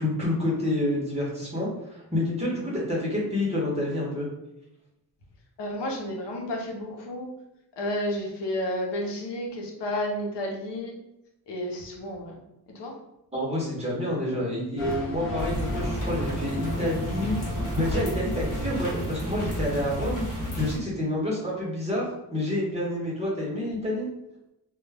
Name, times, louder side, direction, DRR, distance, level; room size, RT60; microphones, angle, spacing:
voice 1, 0.0-4.3 13.3-17.3 17.7-20.2 20.5-24.1, left 1 dB, 15° right, -6 dB, 0.8 m, -28 dB
voice 2, 5.6-7.3 7.8-10.9 11.5-12.3 12.7-12.9, left 1 dB, 90° left, 0 dB, 0.7 m, -31 dB
sound 1, 14.8-20.8, left 1 dB, 35° left, 0.6 m, -36 dB
sound 2, 15.4-20.8, equal, 50° left, 1.0 m, -31 dB
2.3 x 2.1 x 3.2 m, 0.87 s
wide cardioid pair, 170°, 40 cm